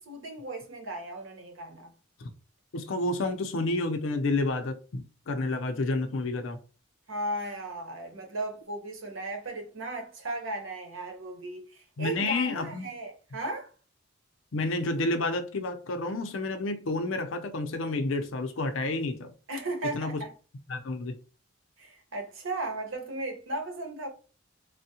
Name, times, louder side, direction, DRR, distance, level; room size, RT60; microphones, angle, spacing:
voice 1, 0.0-1.9 7.1-13.7 19.5-20.3 21.8-24.1, right 2 dB, 80° right, 0.9 m, -36 dB
voice 2, 2.7-6.6 12.0-12.9 14.5-19.3 19.9-20.2 20.7-21.2, left 2 dB, 75° left, 0.5 m, -30 dB
3.4 x 2.1 x 2.7 m
head